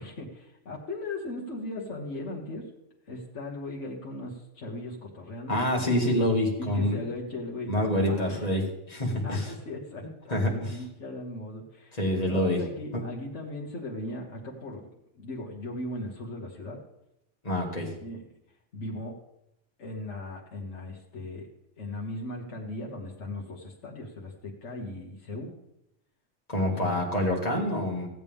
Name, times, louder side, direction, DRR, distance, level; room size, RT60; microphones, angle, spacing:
voice 1, 0.0-2.7 3.1-5.6 6.6-8.5 9.2-14.9 15.1-16.8 18.0-18.2 18.7-19.1 19.8-21.5 21.8-25.5 26.6-27.1, left 2 dB, 70° left, -3 dB, 1.6 m, -38 dB
voice 2, 5.5-7.0 7.7-9.5 10.3-10.5 11.9-12.6 12.9-13.0 17.4-17.9 26.5-28.1, left 1 dB, 30° left, -2 dB, 2.3 m, -26 dB
15.5 x 8.4 x 3.6 m, 0.85 s
omnidirectional pair, 1.3 m